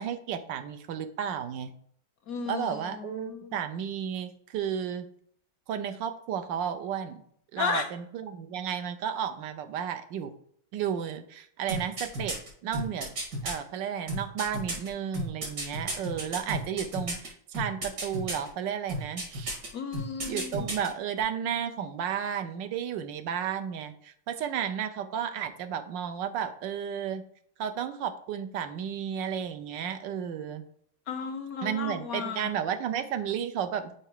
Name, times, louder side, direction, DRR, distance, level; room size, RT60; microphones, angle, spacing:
voice 1, 0.0-1.7 2.5-5.1 5.7-7.2 7.5-10.3 10.7-12.4 12.6-13.1 13.4-19.6 20.3-27.2 27.6-30.6 31.6-33.9, right 8 dB, 80° right, 9 dB, 1.4 m, -33 dB
voice 2, 2.3-3.6 7.6-7.9 19.7-20.7 31.1-32.5, left 6 dB, 70° left, 8 dB, 0.9 m, -34 dB
sound 1, 11.7-13.5 14.1-17.3 17.5-18.5 18.9-19.7 19.9-20.9 21.2-21.3, right 1 dB, 65° right, 2.6 m, -33 dB
6.1 x 4.8 x 4.6 m, 0.66 s
omnidirectional pair, 1.9 m